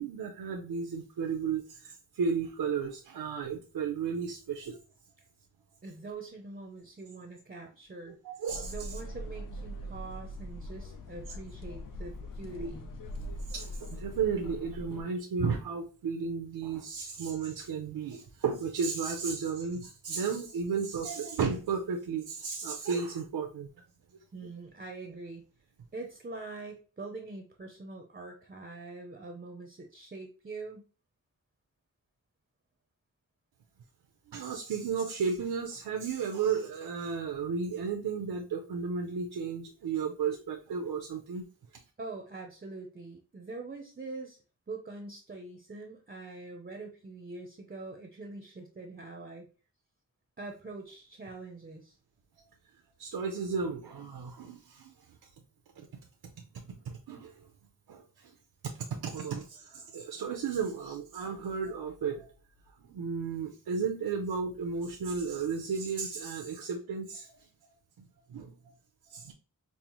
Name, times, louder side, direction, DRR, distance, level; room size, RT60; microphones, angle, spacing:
voice 1, 0.0-4.8 8.2-8.7 12.6-12.7 13.5-23.7 24.4-24.5 34.3-41.5 53.0-54.9 55.8-55.9 56.7-57.4 57.9-58.3 58.6-62.3 62.9-67.4 68.3-68.5 69.1-69.3, right 5 dB, 90° right, 2 dB, 0.6 m, -34 dB
voice 2, 5.8-8.2 8.7-12.9 24.3-25.4 25.9-30.9 42.0-44.4 44.7-49.5 50.4-52.0, right 3 dB, 25° right, 3 dB, 0.6 m, -44 dB
sound 1, 8.5-15.0, equal, 65° left, 0.6 m, -41 dB
5.4 x 2.0 x 3.0 m, 0.37 s
wide cardioid pair, 90°, 36 cm